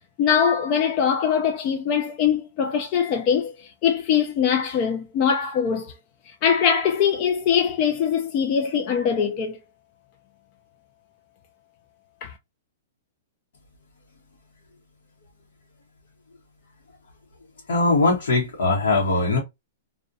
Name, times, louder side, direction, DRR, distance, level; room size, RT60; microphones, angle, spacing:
voice 1, 0.2-5.9 6.3-9.6 12.2-12.3, left 7 dB, 35° left, 0.3 m, -22 dB
voice 2, 17.7-19.4, left 3 dB, 85° left, 0.8 m, -20 dB
2.4 x 2.1 x 2.5 m
hypercardioid pair, 155°, 0 cm